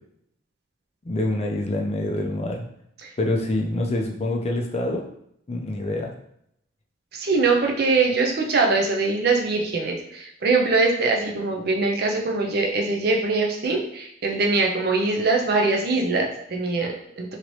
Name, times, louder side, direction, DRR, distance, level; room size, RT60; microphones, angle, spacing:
voice 1, 1.1-2.7 3.2-5.0 5.5-6.1, left 1 dB, 30° left, 1 dB, 0.4 m, -26 dB
voice 2, 7.1-17.4, right 3 dB, 50° right, 1 dB, 0.5 m, -22 dB
2.8 x 2.8 x 3.0 m, 0.72 s
head